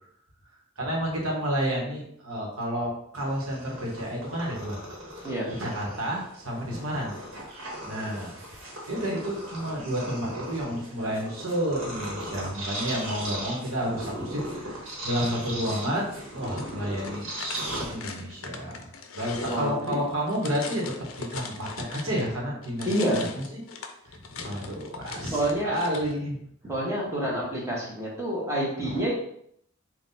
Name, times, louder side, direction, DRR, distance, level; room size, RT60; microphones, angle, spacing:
voice 1, 0.8-4.8 5.2-5.3 5.6-7.2 7.8-8.3 8.9-17.3 17.7-18.8 19.1-23.4 24.0-26.4 28.8-29.0, equal, 90° right, -2 dB, 1.2 m, -30 dB
Purr, 3.2-18.4, right 1 dB, 65° right, 1.3 m, -38 dB
jose garcia - foley - pencil holder, 16.4-22.3 22.6-26.1, left 5 dB, 75° left, 0.5 m, -41 dB
voice 2, 19.4-20.0 22.9-23.3 25.3-25.7 26.6-29.1, right 1 dB, 15° right, -5 dB, 1.2 m, -28 dB
3.9 x 2.4 x 4.0 m, 0.70 s
head